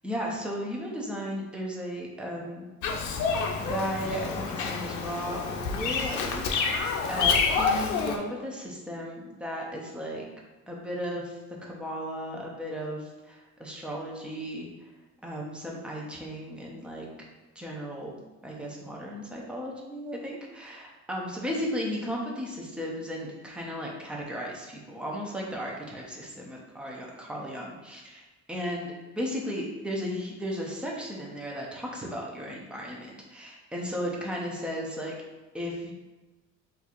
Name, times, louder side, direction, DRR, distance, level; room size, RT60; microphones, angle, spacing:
voice 1, 0.0-2.7 3.7-10.2 10.7-14.7 15.2-17.1 17.6-18.1 18.4-35.1 35.5-35.9, equal, 5° right, -2 dB, 0.4 m, -35 dB
Bird vocalization bird call bird song, 2.8-8.2, left 5 dB, 80° left, 0.5 m, -28 dB
4.2 x 2.4 x 2.5 m, 1.2 s
cardioid pair, 165°, 29 cm